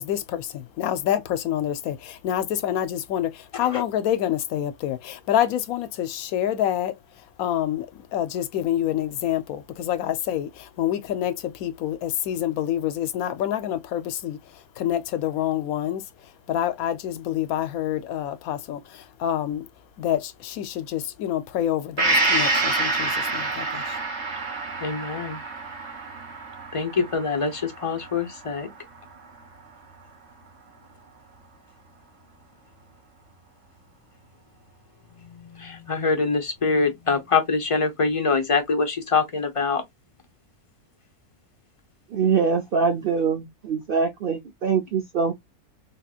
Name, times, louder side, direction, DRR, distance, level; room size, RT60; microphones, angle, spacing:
voice 1, 0.0-7.0 7.4-16.0 16.5-19.7 20.0-24.0, left 11 dB, 75° left, 1.0 m, -27 dB
Gong, 22.0-29.6 30.0-30.1, right 2 dB, 35° right, 0.9 m, -27 dB
voice 2, 24.8-25.4 26.7-28.7 35.2-39.8, left 4 dB, 30° left, 0.6 m, -24 dB
voice 3, 42.1-45.3, right 5 dB, 60° right, 0.6 m, -23 dB
3.5 x 2.8 x 2.3 m
omnidirectional pair, 1.5 m